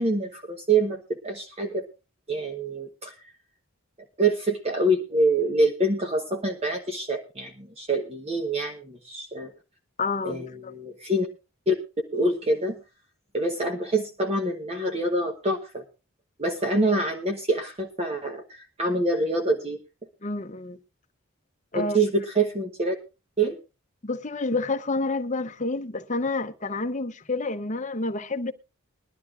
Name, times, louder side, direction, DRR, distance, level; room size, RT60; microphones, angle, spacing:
voice 1, 0.0-1.8 2.3-3.1 4.2-9.5 10.2-11.3 11.7-11.8 12.1-12.8 13.3-15.8 16.4-19.8 21.7-22.9 23.4-23.6, right 2 dB, 30° right, 1.0 m, -26 dB
voice 2, 10.0-10.7 20.2-20.8 21.7-22.0 24.0-28.5, left 3 dB, 35° left, 0.8 m, -29 dB
21.0 x 12.0 x 2.5 m
head